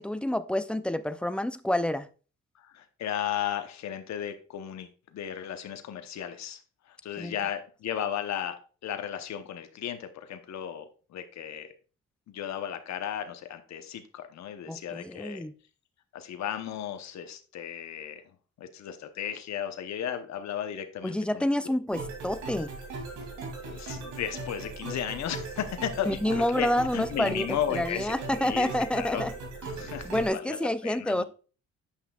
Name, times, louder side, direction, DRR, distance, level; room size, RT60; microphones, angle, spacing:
voice 1, 0.0-2.1 7.2-7.3 14.7-15.5 21.0-22.7 26.1-29.3 30.0-31.2, left 1 dB, 5° left, 0.4 m, -28 dB
voice 2, 2.6-6.6 6.9-8.6 8.8-11.7 12.3-15.4 16.1-18.2 18.6-21.5 23.6-29.2 29.6-31.2, left 9 dB, 65° left, 0.9 m, -35 dB
sound 1, 21.9-30.3, right 3 dB, 80° right, 2.5 m, -39 dB
8.3 x 5.7 x 2.3 m
cardioid pair, 90°, 30 cm